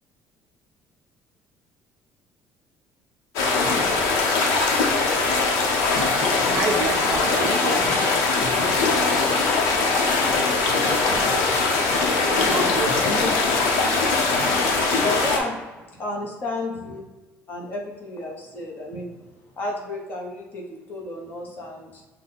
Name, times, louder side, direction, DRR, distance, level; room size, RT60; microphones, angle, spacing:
sound 1, 3.4-15.4, left 3 dB, 90° left, 0.9 m, -21 dB
voice 1, 6.5-7.9 12.5-12.9, right 3 dB, 25° right, 2 dB, 0.5 m, -28 dB
voice 2, 10.6-11.4 12.3-12.7 13.0-13.3 15.0-15.6 16.0-17.0 17.5-19.1 19.6-22.0, left 2 dB, 35° left, -1 dB, 1.0 m, -32 dB
5.7 x 2.2 x 4.1 m, 1.2 s
cardioid pair, 160°, 5 cm